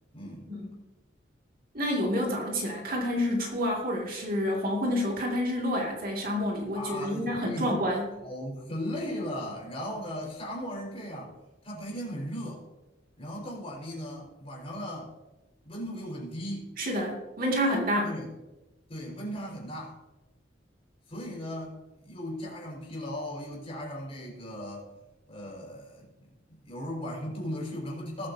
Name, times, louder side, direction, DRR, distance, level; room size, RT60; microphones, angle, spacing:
voice 1, 0.1-0.5 6.7-7.8 8.2-11.3 11.6-12.6 13.2-15.1 15.6-16.8 18.0-18.3 18.9-20.0 21.1-21.8 22.0-24.9 25.3-28.3, equal, 30° left, -3 dB, 4.9 m, -37 dB
voice 2, 1.7-8.0 16.8-18.1, equal, 50° right, -1 dB, 2.4 m, -28 dB
20.0 x 9.0 x 2.8 m, 1.0 s
head